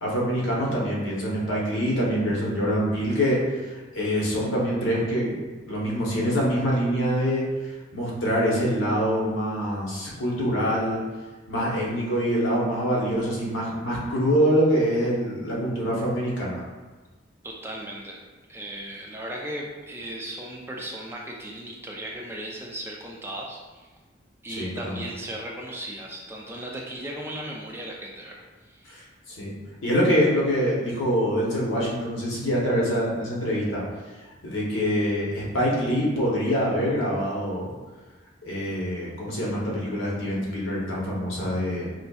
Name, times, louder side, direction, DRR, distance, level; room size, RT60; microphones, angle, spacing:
voice 1, 0.0-5.3 5.7-7.4 7.9-11.0 11.5-16.6 24.5-25.0 28.9-29.5 29.8-33.8 34.4-37.7 38.5-41.9, equal, 90° left, -4 dB, 0.9 m, -25 dB
voice 2, 17.4-18.2 18.5-23.9 24.4-28.9, right 1 dB, 10° right, -2 dB, 0.3 m, -36 dB
4.1 x 2.6 x 2.3 m, 1.3 s
head